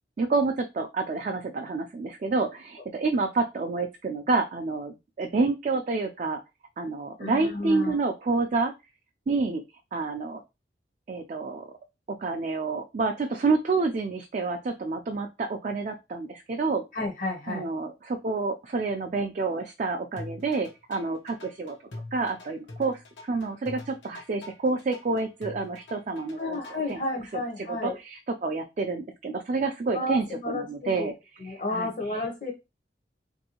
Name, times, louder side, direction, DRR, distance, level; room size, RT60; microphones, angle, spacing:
voice 1, 0.2-6.4 6.8-8.7 9.3-9.6 9.9-10.4 11.1-11.7 12.1-16.8 17.5-21.8 22.1-27.0 27.3-32.2, right 3 dB, 45° right, 3 dB, 0.3 m, -29 dB
voice 2, 7.2-7.9 16.9-17.7 26.4-28.0 29.9-31.1 31.4-32.5, left 2 dB, 45° left, 1 dB, 0.7 m, -31 dB
sound 1, 20.2-27.0, left 2 dB, 90° left, 0.8 m, -43 dB
3.0 x 2.6 x 2.8 m, 0.25 s
head